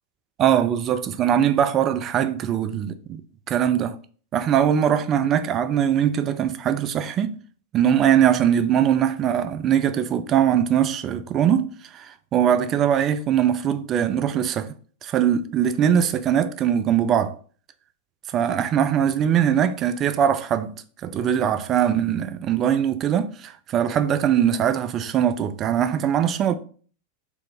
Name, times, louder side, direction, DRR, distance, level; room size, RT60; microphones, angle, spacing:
voice 1, 0.4-3.2 3.5-4.0 4.3-7.4 7.7-14.7 15.0-17.3 18.3-20.8 21.0-26.6, right 9 dB, 30° right, 0.3 m, -21 dB
4.1 x 2.5 x 3.6 m
figure-of-eight pair, 90°, 0 cm